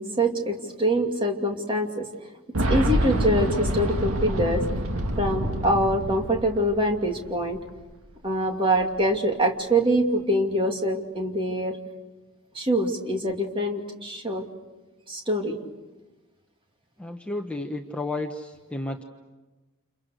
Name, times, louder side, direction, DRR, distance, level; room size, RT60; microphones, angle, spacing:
voice 1, 0.0-2.1 2.7-4.6 5.2-7.6 8.2-11.8 12.5-14.4 15.1-15.6, right 1 dB, 25° right, 2 dB, 2.6 m, -24 dB
Boom, 2.5-7.3 7.5-7.6 8.8-8.9, right 1 dB, 80° right, 2.0 m, -27 dB
voice 2, 17.0-19.0, left 2 dB, 5° left, 2 dB, 1.2 m, -32 dB
30.0 x 29.0 x 6.6 m, 1.1 s
head